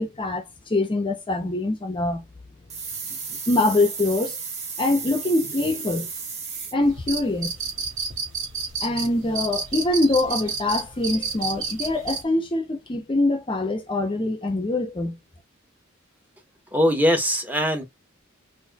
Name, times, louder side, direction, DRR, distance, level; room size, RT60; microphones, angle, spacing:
voice 1, 0.0-2.2 3.1-3.2 3.5-4.4 4.8-6.1 6.7-7.5 8.8-15.2, left 2 dB, 25° left, 0.6 m, -24 dB
sound 1, 2.7-6.7, right 5 dB, 35° right, 1.2 m, -34 dB
sound 2, 6.8-12.2, right 5 dB, 70° right, 2.0 m, -29 dB
voice 2, 16.7-17.9, equal, 10° right, 0.8 m, -21 dB
4.1 x 2.6 x 2.3 m
head